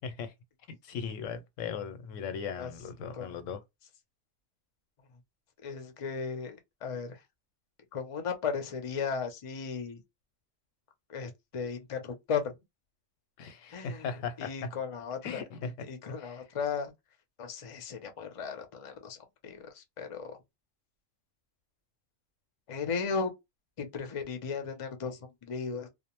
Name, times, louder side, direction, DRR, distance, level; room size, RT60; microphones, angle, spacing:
voice 1, 0.0-0.3 0.7-3.6 13.4-14.7 15.2-15.9 16.2-16.4, left 6 dB, 90° left, 0.9 m, -38 dB
voice 2, 5.6-7.2 7.9-10.0 11.1-12.5 13.7-15.4 15.9-16.9 17.4-20.4 22.7-23.3 23.8-25.9, left 5 dB, 40° left, 0.5 m, -36 dB
2.4 x 2.0 x 2.9 m
omnidirectional pair, 1.3 m